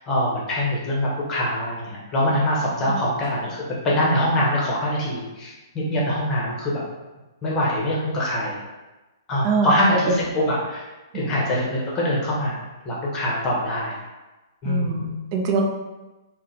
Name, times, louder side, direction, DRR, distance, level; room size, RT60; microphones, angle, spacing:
voice 1, 0.1-6.8 7.4-8.6 9.3-10.8 11.1-12.6 12.8-14.0 14.6-15.0, equal, 25° left, -5 dB, 1.0 m, -23 dB
voice 2, 9.4-9.8 10.1-10.2 11.1-11.4 14.6-15.6, right 3 dB, 40° right, 1 dB, 0.5 m, -24 dB
2.7 x 2.2 x 4.0 m, 1.1 s
hypercardioid pair, 135°, 2 cm